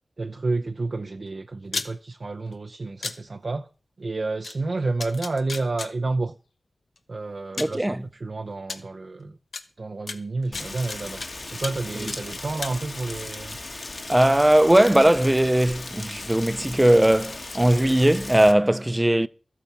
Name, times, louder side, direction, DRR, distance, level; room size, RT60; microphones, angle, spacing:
voice 1, 0.2-3.7 4.0-6.3 7.1-9.3 9.8-11.2 11.5-13.6, right 3 dB, 50° right, 0.6 m, -30 dB
sound 1, 1.6-1.9 3.0-3.1 4.4-4.5 5.0-5.9 7.0-7.1 7.6-7.8 8.7-8.8 9.5-9.6 10.1-11.3 11.6-11.8 12.1-12.7, left 4 dB, 85° left, 1.1 m, -32 dB
voice 2, 7.6-8.0 12.0-12.1 14.1-19.3, right 1 dB, 15° right, 0.5 m, -19 dB
Rain, 10.5-18.5, left 2 dB, 50° left, 1.6 m, -37 dB
13.5 x 8.3 x 5.9 m
wide cardioid pair, 95°, 0 cm